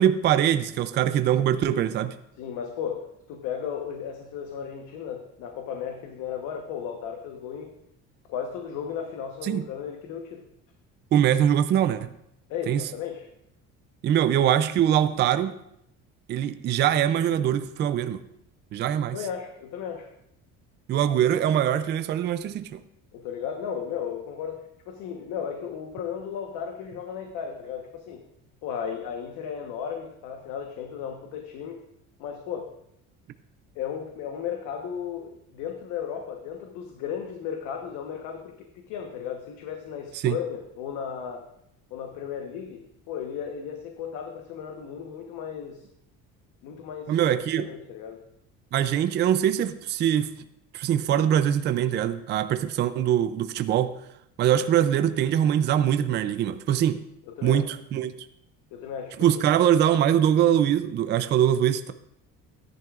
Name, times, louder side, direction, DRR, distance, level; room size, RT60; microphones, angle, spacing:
voice 1, 0.0-2.2 9.4-9.6 11.1-12.1 12.7-12.8 14.0-15.6 16.3-18.2 18.7-19.2 20.9-22.8 40.2-40.3 47.1-47.7 48.7-50.3 50.7-54.0 54.4-57.0 57.4-58.1 59.2-61.9, right 10 dB, 35° right, 10 dB, 0.4 m, -23 dB
voice 2, 2.4-7.7 8.3-10.4 12.5-13.3 19.1-20.1 23.1-28.2 28.6-31.8 32.2-32.7 33.7-41.5 41.9-45.9 46.6-48.2 57.3-57.6 58.7-59.3, left 8 dB, 70° left, 3 dB, 1.1 m, -35 dB
15.0 x 10.5 x 2.5 m, 0.77 s
cardioid pair, 160°, 31 cm